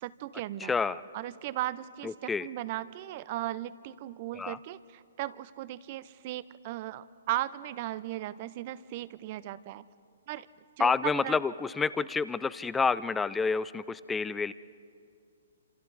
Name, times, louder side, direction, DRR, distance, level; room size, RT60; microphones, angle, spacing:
voice 1, 0.0-0.7 1.1-2.1 2.4-4.8 5.2-5.3 5.6-7.0 7.3-9.8 10.3-10.4 10.8-11.4, right 15 dB, 40° right, 17 dB, 0.7 m, -36 dB
voice 2, 0.6-1.0 2.0-2.5 4.4-4.6 10.8-14.5, left 5 dB, 10° left, 17 dB, 0.5 m, -29 dB
27.5 x 27.0 x 4.1 m, 2.6 s
hypercardioid pair, 140°, 0 cm